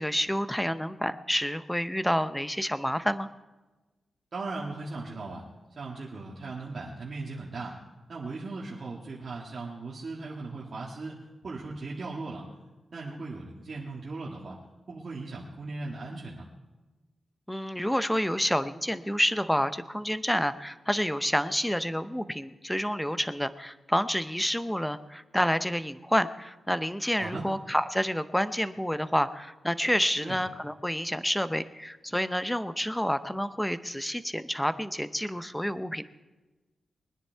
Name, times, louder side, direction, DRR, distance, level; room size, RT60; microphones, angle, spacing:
voice 1, 0.0-3.3 17.5-36.0, equal, 5° left, 13 dB, 0.6 m, -29 dB
voice 2, 4.3-5.4 5.8-7.7 8.1-11.2 11.4-12.5 12.9-14.6 14.9-16.5 27.2-27.4 30.2-30.4, right 3 dB, 50° right, -5 dB, 1.9 m, -38 dB
21.5 x 10.0 x 4.5 m, 1.2 s
cardioid pair, 95°, 0 cm